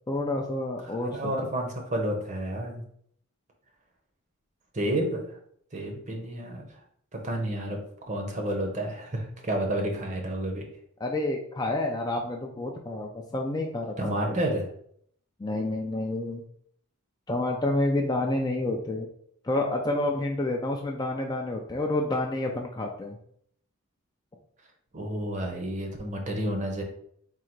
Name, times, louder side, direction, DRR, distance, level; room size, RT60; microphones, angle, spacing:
voice 1, 0.1-1.3 11.0-14.4 15.4-16.4 17.3-19.1 19.4-23.2, left 2 dB, 20° left, 1 dB, 0.3 m, -29 dB
voice 2, 0.8-2.8 4.7-5.2 5.7-6.7 7.1-7.8 8.1-10.6 14.0-14.7 24.9-26.8, right 1 dB, 35° right, 2 dB, 0.7 m, -30 dB
3.8 x 2.4 x 4.4 m, 0.65 s
head